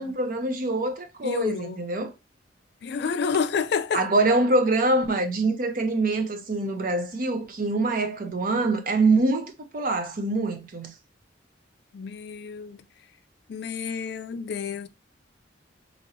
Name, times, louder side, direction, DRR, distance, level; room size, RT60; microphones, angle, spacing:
voice 1, 0.0-2.1 3.9-10.9, right 2 dB, 45° right, 0.6 m, -24 dB
voice 2, 1.2-1.8 2.8-4.1 11.9-12.8 13.5-14.9, left 6 dB, 60° left, 0.3 m, -29 dB
3.0 x 2.8 x 2.6 m
head